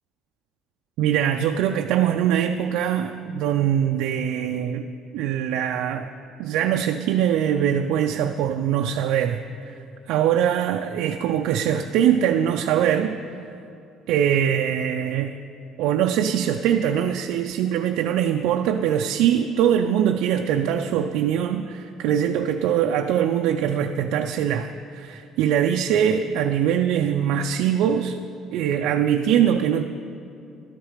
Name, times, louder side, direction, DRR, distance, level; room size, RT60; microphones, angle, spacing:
voice 1, 1.0-4.8 5.1-6.1 6.4-9.4 10.1-13.2 14.1-15.4 15.8-28.2 28.5-29.8, right 9 dB, 80° right, 4 dB, 0.4 m, -22 dB
12.5 x 10.5 x 5.0 m, 2.6 s
cardioid pair, 160°, 0 cm